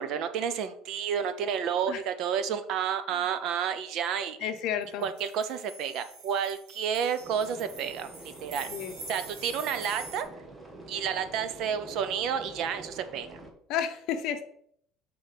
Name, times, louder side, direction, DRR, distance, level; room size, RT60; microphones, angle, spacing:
voice 1, 0.0-4.5 5.0-8.1 8.4-8.7 9.1-10.3 10.9-13.4, right 8 dB, 50° right, 11 dB, 0.6 m, -30 dB
voice 2, 4.4-5.1 8.7-8.9 13.7-14.4, left 9 dB, 55° left, 8 dB, 0.7 m, -31 dB
sound 1, 4.8-10.2, right 3 dB, 80° right, 1.4 m, -45 dB
sound 2, 7.2-13.5, right 1 dB, 15° right, 0.8 m, -47 dB
5.2 x 3.8 x 5.7 m, 0.66 s
cardioid pair, 165°, 0 cm